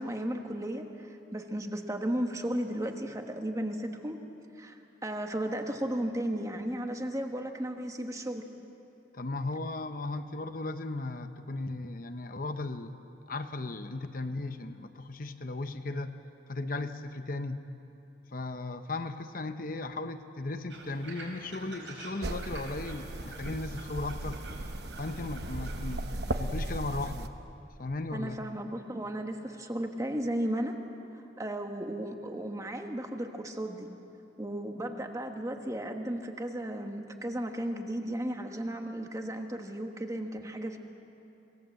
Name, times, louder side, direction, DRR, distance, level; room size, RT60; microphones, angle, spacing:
voice 1, 0.0-4.2 4.6-4.8 5.0-8.5 28.1-30.8 31.4-33.9 34.4-40.8, right 1 dB, 15° right, 4 dB, 1.4 m, -34 dB
voice 2, 9.1-13.0 13.3-16.1 16.5-17.7 18.3-24.4 25.0-27.3 27.8-28.4, left 2 dB, 50° left, 8 dB, 0.9 m, -36 dB
sound 1, 20.7-26.0, right 2 dB, 85° right, 5.1 m, -47 dB
sound 2, 22.2-27.3, right 1 dB, 60° right, 1.1 m, -36 dB
26.5 x 18.0 x 7.7 m, 2.8 s
head